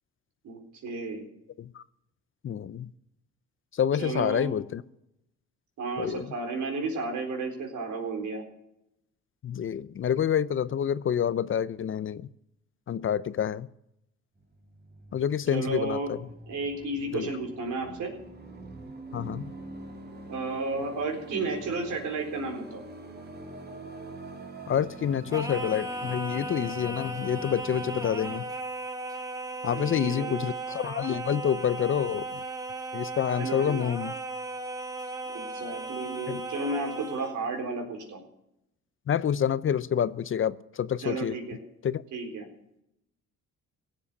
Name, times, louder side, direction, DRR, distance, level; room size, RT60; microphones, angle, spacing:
voice 1, 0.4-1.3 4.0-4.5 5.8-8.4 15.5-16.1 16.5-18.1 20.3-22.8 29.6-30.4 33.4-33.8 35.3-38.2 41.0-41.6 42.1-42.5, right 3 dB, 75° right, 2 dB, 4.1 m, -33 dB
voice 2, 2.4-2.9 3.7-4.8 6.0-6.3 9.4-12.3 12.9-13.7 15.1-16.2 17.1-17.3 19.1-19.5 24.7-28.5 29.6-32.4 32.9-34.1 36.3-36.4 39.1-41.4 41.8-42.0, left 9 dB, 45° left, 18 dB, 0.6 m, -28 dB
sound 1, 14.4-28.4, right 2 dB, 35° right, 2.9 m, -44 dB
Singing, 25.3-37.4, right 2 dB, 10° right, 1.5 m, -36 dB
17.0 x 7.6 x 8.3 m, 0.82 s
cardioid pair, 90°, 30 cm